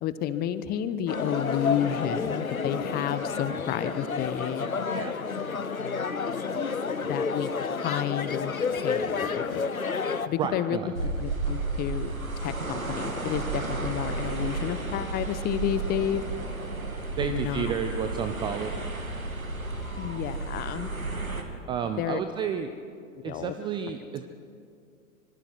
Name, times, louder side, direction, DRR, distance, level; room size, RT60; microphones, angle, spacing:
voice 1, 0.0-4.7 7.1-8.5 8.8-9.6 10.3-12.1 12.4-16.2 17.2-17.7 20.0-20.9 22.0-22.2 23.2-23.5, left 10 dB, 25° left, 13 dB, 1.0 m, -31 dB
sound 1, 1.1-10.3, left 5 dB, 85° left, 1.0 m, -30 dB
voice 2, 10.4-10.9 17.2-18.7 21.7-22.7 23.2-24.2, right 8 dB, 10° right, 8 dB, 0.5 m, -31 dB
sound 2, 10.9-21.4, right 3 dB, 85° right, 2.5 m, -32 dB
26.0 x 24.0 x 4.6 m, 2.4 s
figure-of-eight pair, 105°, 41 cm